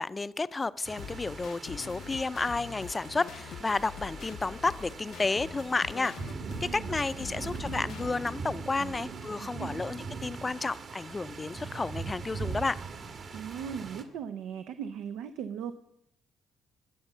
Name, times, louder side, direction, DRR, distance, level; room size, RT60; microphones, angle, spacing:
voice 1, 0.0-6.1 6.6-12.8, left 3 dB, 25° left, 16 dB, 0.4 m, -31 dB
sound 1, 0.8-14.0, right 5 dB, 55° right, 1.5 m, -41 dB
sound 2, 1.0-8.4, left 8 dB, 75° left, 0.6 m, -44 dB
voice 2, 6.4-7.6 8.8-8.9 9.4-9.8 13.3-15.7, right 8 dB, 90° right, 10 dB, 0.5 m, -39 dB
20.0 x 7.0 x 5.5 m, 0.83 s
cardioid pair, 90°, 0 cm